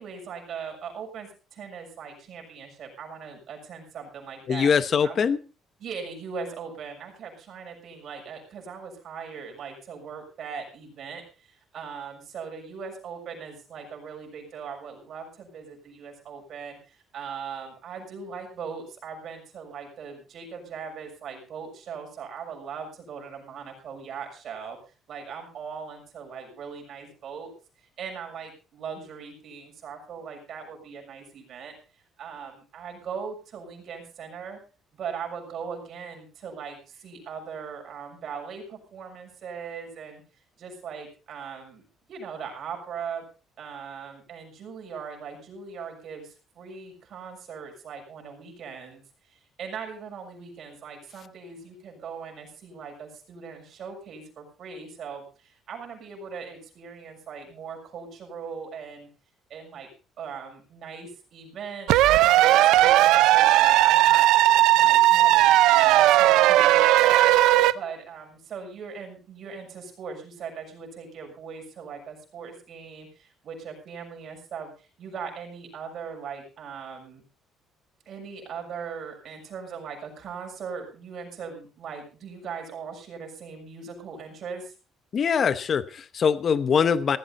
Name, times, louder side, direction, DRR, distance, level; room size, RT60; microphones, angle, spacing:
voice 1, 0.0-4.7 5.0-5.2 5.8-24.8 25.1-27.5 28.0-31.7 32.2-34.6 34.9-40.2 40.6-43.2 43.6-49.0 49.3-59.1 59.5-59.9 60.2-64.2 64.6-67.3 67.7-77.2 78.0-84.7, right 6 dB, 45° right, 3 dB, 6.7 m, -39 dB
voice 2, 4.5-5.4 85.1-87.2, left 6 dB, 35° left, 13 dB, 0.9 m, -23 dB
sound 1, 61.9-67.7, right 15 dB, 90° right, 0.7 m, -17 dB
17.0 x 14.5 x 4.2 m, 0.35 s
cardioid pair, 165°, 0 cm